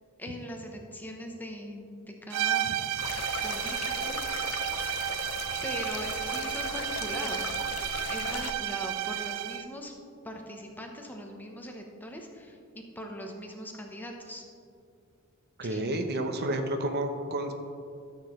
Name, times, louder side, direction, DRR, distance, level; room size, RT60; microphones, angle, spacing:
voice 1, 0.2-2.7 3.4-4.2 5.6-9.9 10.2-14.5 15.6-15.8, equal, 10° left, 1 dB, 0.8 m, -41 dB
sound 1, 2.3-9.7, right 12 dB, 80° right, 0.3 m, -32 dB
sound 2, 3.0-8.5, left 7 dB, 70° left, 0.4 m, -38 dB
voice 2, 15.6-17.5, right 1 dB, 50° right, 6 dB, 0.7 m, -30 dB
13.0 x 6.9 x 3.1 m, 2.4 s
head